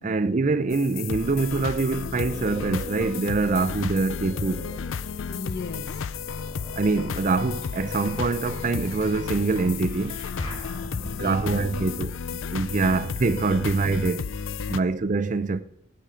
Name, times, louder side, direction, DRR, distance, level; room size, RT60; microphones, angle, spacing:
voice 1, 0.0-4.7 6.7-10.2 11.2-14.3 14.7-15.6, right 3 dB, 40° right, 0.5 m, -25 dB
sound 1, 0.7-14.8, left 6 dB, 80° left, 0.5 m, -33 dB
sound 2, 1.6-5.5 6.0-11.7, equal, 30° left, 4.5 m, -43 dB
voice 2, 5.3-6.2 10.6-11.7 14.6-14.8, left 3 dB, 55° left, 1.0 m, -39 dB
16.5 x 9.0 x 4.9 m
head